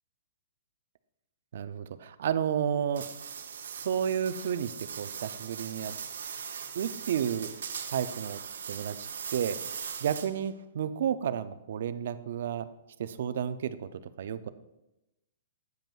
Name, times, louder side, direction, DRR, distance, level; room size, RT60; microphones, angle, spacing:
voice 1, 1.5-3.1 3.6-5.9 6.7-7.5 7.9-8.4 8.7-9.6 10.0-12.7 13.0-13.9 14.2-14.5, right 8 dB, 50° right, 13 dB, 0.4 m, -31 dB
sound 1, 2.9-10.5, right 7 dB, 80° right, 0.7 m, -40 dB
9.0 x 7.8 x 2.3 m, 0.95 s
hypercardioid pair, 175°, 0 cm